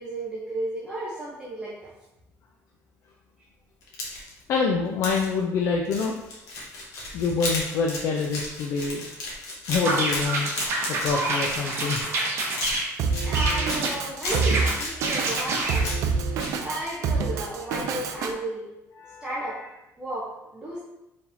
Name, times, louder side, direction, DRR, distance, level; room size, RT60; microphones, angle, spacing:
voice 1, 0.0-1.9 13.2-16.0 16.6-18.7 19.2-19.7 20.0-20.8, right 1 dB, 15° right, -7 dB, 0.7 m, -33 dB
sound 1, 3.8-4.4 5.0-5.3 5.9-12.2 12.5-13.8 14.2-14.9 15.3-16.1 16.4-16.5, left 2 dB, 70° left, 1.3 m, -34 dB
voice 2, 4.5-6.1 7.1-9.0 9.7-10.5 10.9-12.0 19.0-19.2, left 4 dB, 55° left, 0 dB, 0.4 m, -26 dB
sound 2, 9.7-12.9 13.3-13.9 14.3-15.9, right 2 dB, 45° right, 0.9 m, -27 dB
Drum kit, 13.0-18.3, right 5 dB, 65° right, 0.4 m, -27 dB
4.6 x 3.5 x 2.7 m, 0.93 s
cardioid pair, 165°, 6 cm